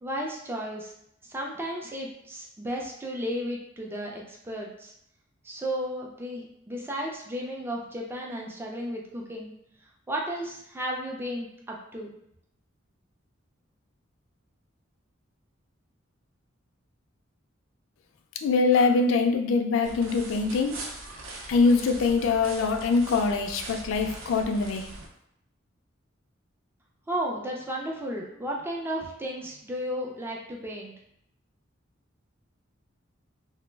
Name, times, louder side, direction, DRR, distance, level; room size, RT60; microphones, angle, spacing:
voice 1, 0.0-0.9 1.3-4.9 5.4-9.6 10.1-12.1 27.1-30.9, equal, 10° right, -1 dB, 0.4 m, -34 dB
voice 2, 18.4-20.8 21.5-24.9, left 4 dB, 70° left, 5 dB, 0.3 m, -23 dB
sound 1, 19.8-25.1, right 2 dB, 75° right, 0.5 m, -41 dB
2.3 x 2.0 x 3.2 m, 0.74 s
head